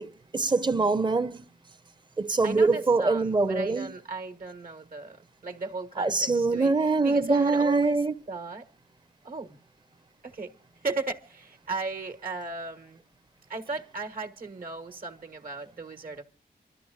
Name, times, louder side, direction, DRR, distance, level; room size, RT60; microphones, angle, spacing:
voice 1, 0.0-1.5 2.2-3.9 6.0-8.1, right 3 dB, 25° right, 0.7 m, -24 dB
voice 2, 2.4-8.0 8.3-8.7 9.2-9.6 10.2-10.5 10.8-13.0 13.5-16.2, right 3 dB, 60° right, 1.4 m, -36 dB
29.0 x 13.0 x 2.4 m
wide cardioid pair, 130°, 17 cm